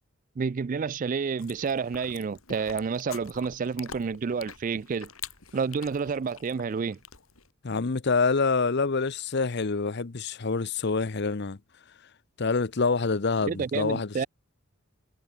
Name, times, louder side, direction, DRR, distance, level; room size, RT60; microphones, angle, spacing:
voice 1, 0.4-5.1 5.5-7.0 13.4-14.3, right 5 dB, 40° right, 0.3 m, -29 dB
Chewing mastication, 1.4-7.5, left 8 dB, 85° left, 4.7 m, -46 dB
voice 2, 7.6-11.6 12.4-14.3, left 4 dB, 55° left, 0.8 m, -26 dB
head